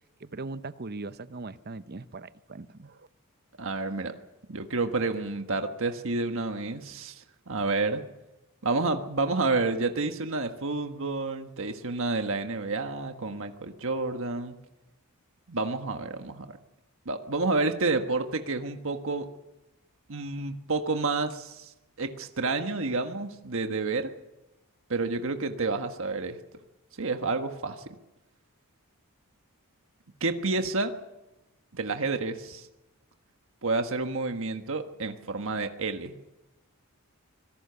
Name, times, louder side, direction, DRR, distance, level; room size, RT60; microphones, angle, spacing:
voice 1, 0.2-3.1, right 3 dB, 45° right, 13 dB, 0.8 m, -40 dB
voice 2, 3.6-4.1 4.5-8.1 8.6-14.5 15.5-16.6 17.0-19.3 20.1-21.7 22.0-24.1 24.9-26.4 27.0-27.9 30.2-31.0 31.7-32.7 33.6-36.2, right 3 dB, 60° right, 6 dB, 1.5 m, -29 dB
25.0 x 18.0 x 7.0 m, 1.0 s
head